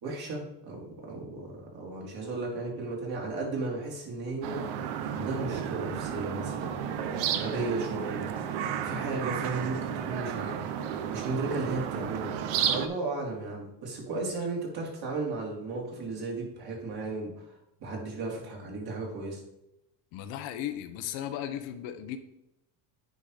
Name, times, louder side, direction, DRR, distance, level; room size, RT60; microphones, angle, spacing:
voice 1, 0.0-4.7 5.1-8.3 8.8-12.4 12.6-17.5 17.8-19.4, right 3 dB, 50° right, -1 dB, 3.5 m, -35 dB
sound 1, 4.4-12.9, right 8 dB, 70° right, 1.0 m, -32 dB
voice 2, 20.1-22.2, left 11 dB, 70° left, 8 dB, 1.1 m, -36 dB
9.1 x 4.9 x 5.0 m, 0.85 s
supercardioid pair, 90°, 47 cm